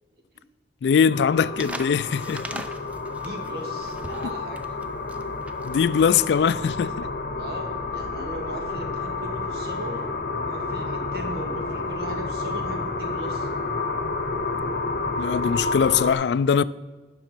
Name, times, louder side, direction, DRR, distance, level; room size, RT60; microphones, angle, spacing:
voice 1, 0.8-2.7 5.6-7.1 15.2-16.6, left 7 dB, 75° left, 0.3 m, -21 dB
sound 1, 1.1-16.1, left 3 dB, 55° left, 0.9 m, -30 dB
sound 2, 1.5-4.5, equal, 30° left, 1.1 m, -49 dB
sound 3, 1.5-7.0, right 1 dB, 10° right, 0.5 m, -40 dB
voice 2, 3.1-4.7 7.4-10.0 10.3-13.5, right 1 dB, 60° right, 1.8 m, -38 dB
10.0 x 6.3 x 5.9 m
head